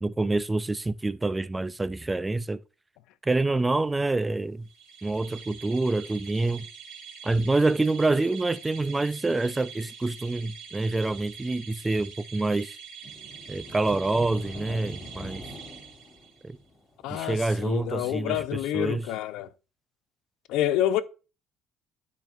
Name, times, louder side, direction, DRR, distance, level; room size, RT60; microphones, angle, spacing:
voice 1, 0.0-2.6 3.2-4.7 5.0-6.7 7.2-12.8 13.5-15.5 16.4-16.6 17.1-19.1, right 2 dB, 15° right, 0.3 m, -27 dB
sound 1, 4.7-16.5, right 6 dB, 75° right, 2.2 m, -45 dB
sound 2, 11.3-12.1 13.0-17.9, equal, 35° left, 2.3 m, -44 dB
voice 2, 17.0-19.5 20.5-21.0, left 12 dB, 85° left, 0.6 m, -28 dB
12.0 x 5.1 x 2.5 m
cardioid pair, 115°, 0 cm